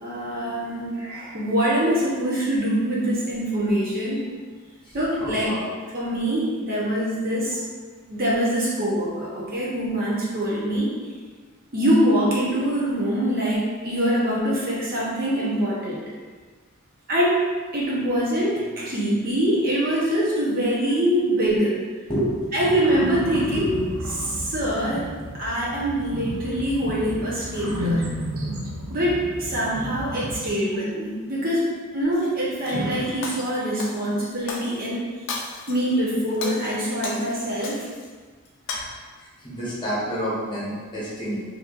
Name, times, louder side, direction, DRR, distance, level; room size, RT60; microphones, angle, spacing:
voice 1, 0.0-4.2 4.9-5.5 5.9-7.6 8.0-10.9 11.7-16.0 17.1-17.4 17.7-21.7 22.5-23.8 24.1-25.1 25.4-28.0 28.9-31.7 31.9-35.0 35.7-37.9, equal, 40° right, -7 dB, 0.8 m, -24 dB
voice 2, 4.8-5.6 22.1-22.7 23.5-23.6 38.7-38.9 39.2-41.4, equal, 20° left, -8 dB, 0.9 m, -29 dB
sound 1, 22.8-30.5, equal, 65° right, 0.5 m, -32 dB
Shatter, 32.1-32.8 33.2-34.9 35.3-35.9 36.3-38.1 38.5-38.8, left 4 dB, 60° left, 0.5 m, -35 dB
4.2 x 2.7 x 2.4 m, 1.5 s
head